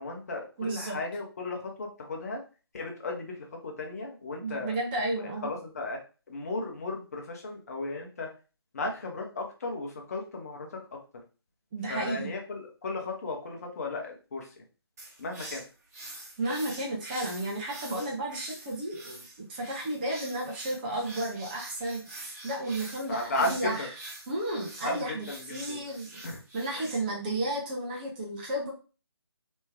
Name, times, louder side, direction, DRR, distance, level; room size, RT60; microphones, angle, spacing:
voice 1, 0.0-2.4 2.7-4.7 5.2-6.0 6.3-8.3 8.7-10.8 11.9-14.5 15.2-15.6 23.1-23.9 24.8-25.8 26.2-26.4 26.7-26.8, left 2 dB, 35° left, 1 dB, 1.0 m, -35 dB
voice 2, 0.6-1.0 4.4-5.5 11.7-12.3 16.4-23.9 24.3-26.1 26.5-28.7, right 1 dB, 20° right, -1 dB, 0.9 m, -33 dB
sound 1, 15.0-27.0, right 2 dB, 35° right, 1.4 m, -45 dB
3.1 x 3.1 x 3.5 m, 0.34 s
figure-of-eight pair, 150°, 14 cm